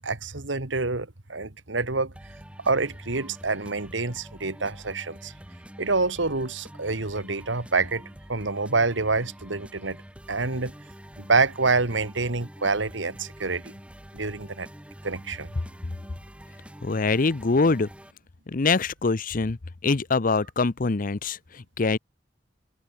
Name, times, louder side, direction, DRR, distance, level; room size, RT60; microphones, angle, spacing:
voice 1, 0.0-2.1 2.6-5.3 5.8-8.0 8.3-10.0 10.3-10.7 11.2-13.7 14.1-14.7 15.0-15.5, right 3 dB, 85° right, 2.1 m, -27 dB
sound 1, 2.1-18.1, equal, 5° right, 2.4 m, -46 dB
sound 2, 7.5-12.4, equal, 75° left, 7.4 m, -55 dB
voice 2, 16.8-17.9 18.5-22.0, left 3 dB, 50° left, 0.7 m, -24 dB
head